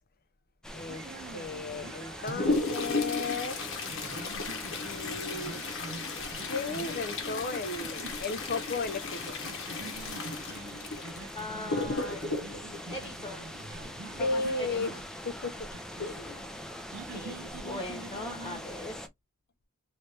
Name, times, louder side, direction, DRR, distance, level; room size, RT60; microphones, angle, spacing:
sound 1, 0.6-19.1, left 1 dB, 5° left, 0.6 m, -43 dB
voice 1, 0.7-1.1 1.3-3.7 4.8-5.6 6.5-9.4 14.2-15.0 15.2-15.7 16.0-16.4 17.1-17.4, left 3 dB, 45° left, 0.7 m, -35 dB
sound 2, 0.9-19.1, right 3 dB, 55° right, 0.6 m, -47 dB
Toilet flush, 1.9-13.8 15.7-15.8 16.2-16.3 17.0-17.1 17.8-18.0 18.5-18.6, left 3 dB, 60° left, 1.1 m, -35 dB
voice 2, 11.3-13.5 13.7-14.4 14.7-15.0 16.2-16.7 17.6-19.0, left 2 dB, 20° left, 1.2 m, -41 dB
3.2 x 3.2 x 2.8 m
head